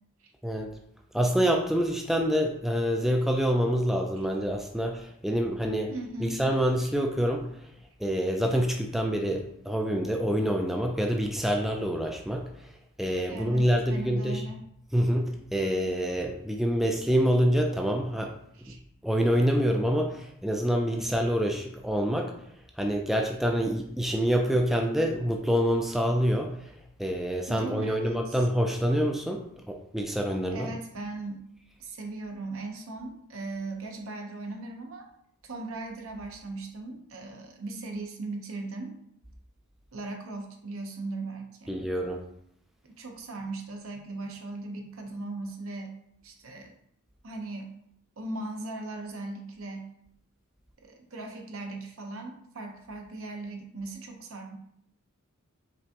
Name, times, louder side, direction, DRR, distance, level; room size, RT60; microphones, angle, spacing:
voice 1, 1.1-5.9 6.2-7.5 8.0-12.5 13.0-14.4 14.9-18.3 18.7-18.8 19.0-22.3 22.8-26.7 27.0-30.7 41.7-42.2, equal, ahead, 2 dB, 0.3 m, -26 dB
voice 2, 5.9-6.4 13.3-14.7 18.5-18.8 27.5-28.5 30.5-31.4 31.8-35.1 35.4-39.0 39.9-41.8 42.8-46.0 46.2-46.8 47.2-47.8 48.2-49.9 50.8-54.6, right 2 dB, 70° right, 3 dB, 0.8 m, -38 dB
5.1 x 3.4 x 2.8 m, 0.71 s
head